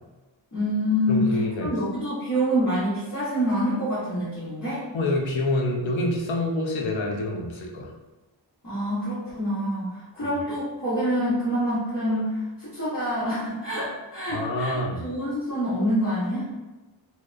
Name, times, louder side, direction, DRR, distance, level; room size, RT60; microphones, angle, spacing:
voice 1, 0.5-4.8 8.6-16.4, equal, 40° left, -11 dB, 1.0 m, -26 dB
voice 2, 1.1-1.7 4.9-7.9 14.3-15.0, left 1 dB, 80° left, -1 dB, 0.6 m, -27 dB
2.7 x 2.1 x 2.3 m, 1.1 s
wide cardioid pair, 95°, 45 cm